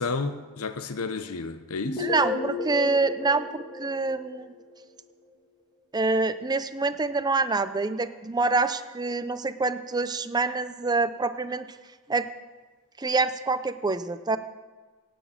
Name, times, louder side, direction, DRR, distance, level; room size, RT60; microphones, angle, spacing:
voice 1, 0.0-2.1, left 4 dB, 90° left, 0.7 m, -31 dB
sound 1, 1.8-4.8, left 3 dB, 30° left, 2.7 m, -33 dB
voice 2, 2.0-4.5 5.9-11.7 12.1-12.3 13.0-14.4, right 3 dB, 20° right, 0.6 m, -26 dB
17.5 x 6.4 x 8.6 m
head